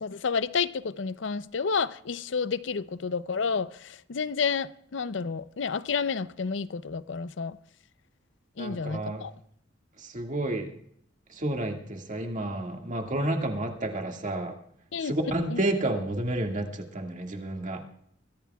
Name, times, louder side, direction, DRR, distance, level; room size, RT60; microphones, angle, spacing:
voice 1, 0.0-7.6 8.6-9.3 14.9-15.1 15.5-15.6, left 5 dB, 75° left, 0.6 m, -30 dB
voice 2, 8.6-9.2 10.0-10.7 11.3-14.5 15.0-17.8, right 1 dB, 45° right, 2.0 m, -30 dB
23.0 x 15.5 x 2.3 m
head